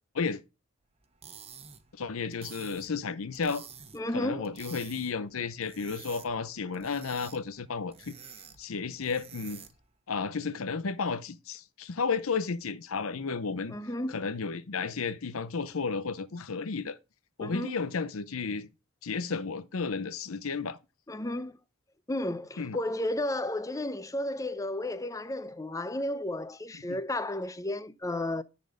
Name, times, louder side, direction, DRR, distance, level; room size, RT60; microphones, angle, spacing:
sound 1, 1.0-9.9, right 7 dB, 30° right, 1.1 m, -50 dB
voice 1, 2.0-3.7 4.1-8.1 8.6-9.6 10.1-13.8 14.1-17.0 17.4-18.7 19.0-20.8 22.6-22.8 26.9-27.0, left 5 dB, 75° left, 0.6 m, -33 dB
voice 2, 3.9-4.5 13.7-14.2 17.4-17.8 21.1-21.6 22.1-28.4, left 1 dB, 15° left, 0.6 m, -33 dB
10.5 x 4.3 x 6.3 m
head